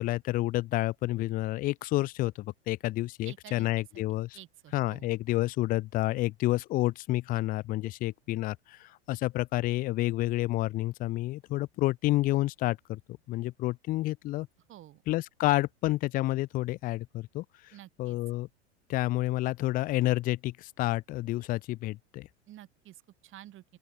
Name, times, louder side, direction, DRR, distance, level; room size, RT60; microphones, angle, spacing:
voice 1, 0.0-4.4 4.7-13.0 13.3-14.5 15.1-17.7 18.0-18.5 18.9-22.3, left 17 dB, 25° left, 0.5 m, -29 dB
voice 2, 3.2-3.7 3.9-4.0 4.3-5.1 14.7-15.0 17.7-18.2 22.5-23.8, right 14 dB, 35° right, 4.9 m, -50 dB
open air
hypercardioid pair, 95°, 34 cm